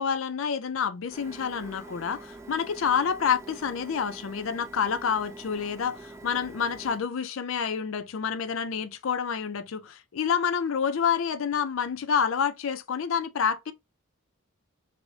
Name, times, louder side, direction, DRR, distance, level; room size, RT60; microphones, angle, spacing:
voice 1, 0.0-13.7, left 7 dB, 70° left, 0.4 m, -28 dB
Printer, 1.1-7.0, right 2 dB, 15° right, 0.3 m, -45 dB
4.7 x 2.0 x 2.7 m
head